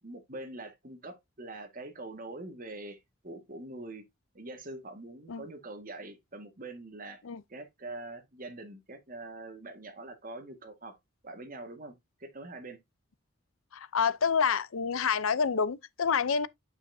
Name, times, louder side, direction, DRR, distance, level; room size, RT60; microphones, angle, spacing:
voice 1, 0.0-4.0 4.3-7.2 7.5-11.0 11.2-12.8, right 2 dB, 40° right, 1.7 m, -44 dB
voice 2, 13.7-16.5, left 6 dB, 80° left, 0.6 m, -28 dB
9.6 x 5.6 x 2.7 m
head